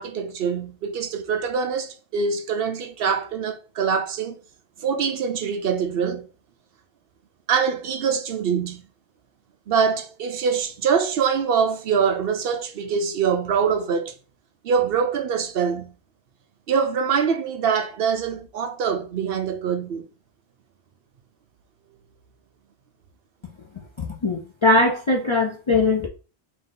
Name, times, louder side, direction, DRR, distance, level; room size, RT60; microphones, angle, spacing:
voice 1, 0.0-4.4 4.8-6.3 7.5-8.8 9.7-14.1 14.6-15.9 16.7-20.1, right 6 dB, 65° right, 0.7 m, -24 dB
voice 2, 24.0-26.1, left 2 dB, 45° left, 0.3 m, -20 dB
3.6 x 2.7 x 3.7 m
omnidirectional pair, 1.1 m